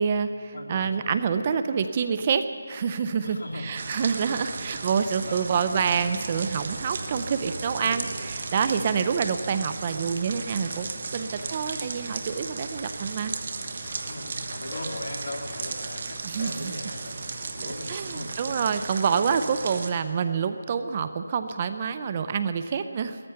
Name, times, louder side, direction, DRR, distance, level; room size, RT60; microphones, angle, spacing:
voice 1, 0.0-13.3 16.2-16.7 17.9-23.2, right 6 dB, 30° right, 10 dB, 0.5 m, -27 dB
voice 2, 0.5-1.1 3.2-4.3 5.1-5.8 8.7-9.1 14.0-18.3, left 1 dB, 70° left, -1 dB, 2.2 m, -39 dB
sound 1, 3.7-19.9, right 3 dB, 45° right, 1.1 m, -35 dB
sound 2, 10.5-10.9 11.4-11.6 12.2-13.5 13.8-14.4 14.6-15.0 15.4-15.8 16.3-16.7, left 1 dB, 20° left, 4.4 m, -45 dB
16.0 x 14.0 x 5.7 m, 2.2 s
figure-of-eight pair, 170°, 0 cm